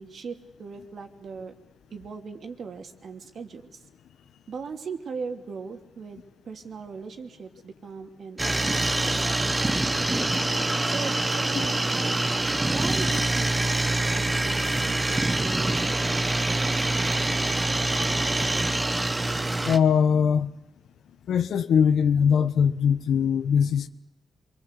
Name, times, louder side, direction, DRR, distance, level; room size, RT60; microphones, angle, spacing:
voice 1, 0.0-1.5 1.9-3.8 4.5-9.5 10.9-12.1 12.7-16.3, right 5 dB, 55° right, 2.9 m, -39 dB
sound 1, 8.4-19.8, right 2 dB, 15° right, 1.3 m, -25 dB
voice 2, 19.6-20.5 21.3-23.9, left 7 dB, 85° left, 1.4 m, -21 dB
27.0 x 24.0 x 8.3 m
wide cardioid pair, 130°, 0 cm